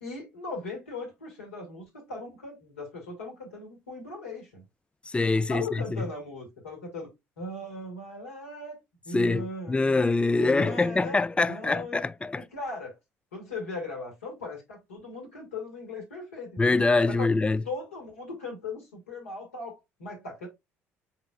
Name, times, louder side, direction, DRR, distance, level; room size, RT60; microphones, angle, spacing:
voice 1, 0.0-4.6 5.3-7.1 7.4-8.8 9.1-10.0 10.3-11.2 11.4-12.1 12.3-13.0 13.3-16.8 17.1-17.3 17.7-20.5, left 2 dB, 75° left, 2.0 m, -38 dB
voice 2, 5.1-6.0 9.1-12.4 16.6-17.6, left 3 dB, 15° left, 0.3 m, -24 dB
5.9 x 3.9 x 2.3 m
figure-of-eight pair, 55°, 7 cm